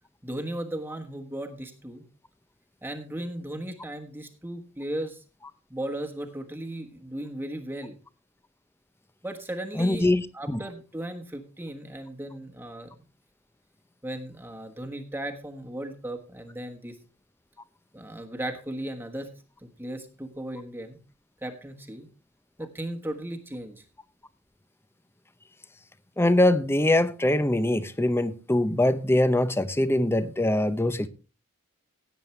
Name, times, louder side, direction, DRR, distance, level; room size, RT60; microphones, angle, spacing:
voice 1, 0.2-2.1 2.8-5.2 5.7-8.0 9.2-13.0 14.0-17.0 17.9-19.3 19.6-21.0 21.4-22.1 22.6-23.8, right 1 dB, 10° right, 1.3 m, -36 dB
voice 2, 9.8-10.6 26.2-31.1, left 1 dB, 10° left, 0.7 m, -23 dB
16.5 x 9.0 x 3.2 m
head